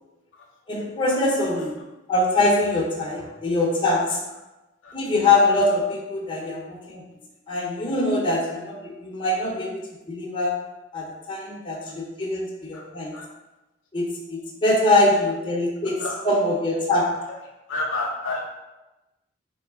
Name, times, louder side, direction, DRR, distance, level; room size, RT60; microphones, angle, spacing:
voice 1, 0.7-1.6 2.1-4.2 4.9-7.0 7.5-9.8 10.1-10.5 10.9-13.2 13.9-16.0 16.2-17.1, left 2 dB, 25° left, -3 dB, 0.7 m, -23 dB
voice 2, 17.7-18.5, left 2 dB, 65° left, 0 dB, 0.6 m, -29 dB
3.2 x 3.1 x 3.6 m, 1.0 s
head